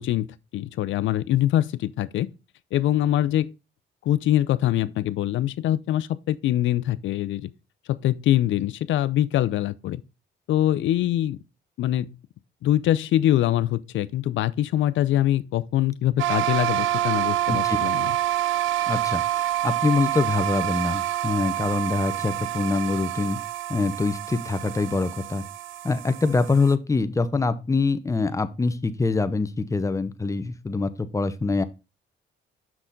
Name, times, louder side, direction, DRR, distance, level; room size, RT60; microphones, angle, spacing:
voice 1, 0.0-2.3 2.7-3.5 4.0-7.5 7.9-10.0 10.5-11.4 11.8-12.2 12.6-18.1, left 13 dB, 75° left, 0.5 m, -23 dB
sound 1, 16.2-26.7, right 13 dB, 80° right, 0.5 m, -27 dB
voice 2, 17.5-17.8 18.9-23.4 23.7-25.4 25.8-31.6, left 3 dB, 15° left, 0.7 m, -24 dB
6.1 x 5.8 x 3.8 m
cardioid pair, 90°, 20 cm